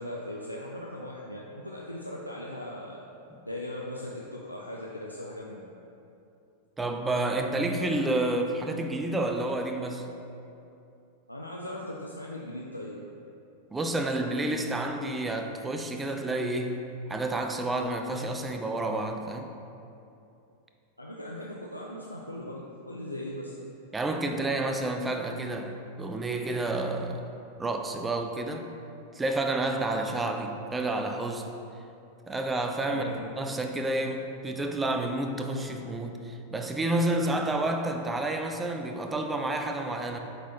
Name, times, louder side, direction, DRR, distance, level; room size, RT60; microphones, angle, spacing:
voice 1, 0.0-3.0 3.5-5.6 11.3-13.0 21.0-23.5 32.8-33.2, left 1 dB, 90° left, -3 dB, 0.4 m, -39 dB
voice 2, 6.8-10.1 13.7-16.8 17.1-19.5 23.9-27.2 27.6-28.7 29.1-31.5 32.3-40.2, right 2 dB, 10° right, 4 dB, 0.5 m, -30 dB
8.0 x 4.1 x 2.9 m, 2.7 s
figure-of-eight pair, 90°, 0 cm